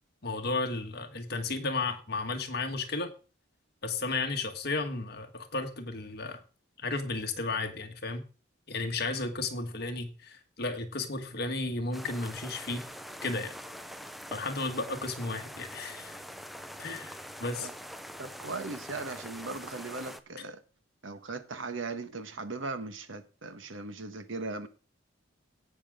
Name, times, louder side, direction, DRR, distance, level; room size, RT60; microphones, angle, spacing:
voice 1, 0.2-3.1 3.8-6.4 6.8-8.2 8.7-12.8 13.2-13.5 14.3-16.2 16.8-17.7, left 3 dB, 55° left, 1.7 m, -33 dB
sound 1, 11.9-20.2, equal, ahead, 0.7 m, -44 dB
voice 2, 18.2-20.6 21.0-24.7, right 3 dB, 80° right, 1.4 m, -38 dB
17.5 x 6.3 x 3.7 m
head